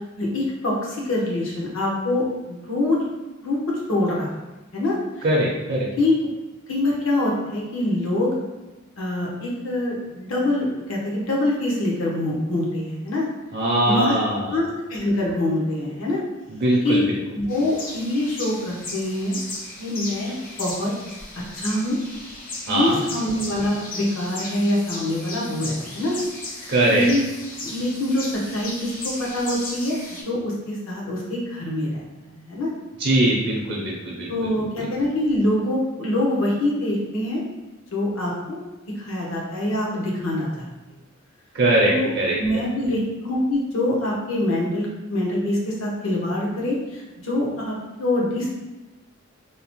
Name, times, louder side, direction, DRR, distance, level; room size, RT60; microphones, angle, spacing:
voice 1, 0.0-3.0 3.4-4.3 4.7-5.2 6.0-6.1 6.7-8.3 9.0-13.3 13.9-14.2 14.5-16.2 16.8-17.0 17.3-19.4 19.8-20.9 21.5-22.0 22.7-26.2 26.6-27.2 27.6-30.0 30.2-32.0 32.4-32.7 34.3-37.4 37.9-38.6 39.0-40.7 41.8-42.1 42.4-48.5, left 1 dB, 80° left, -3 dB, 0.8 m, -24 dB
voice 2, 5.2-5.9 13.5-14.6 16.5-17.2 22.7-23.0 26.7-27.1 33.0-34.9 41.5-42.6, right 1 dB, 50° right, -4 dB, 0.5 m, -21 dB
sound 1, 17.5-30.2, left 2 dB, 40° left, 0.5 m, -36 dB
2.9 x 2.0 x 2.9 m, 1.1 s
head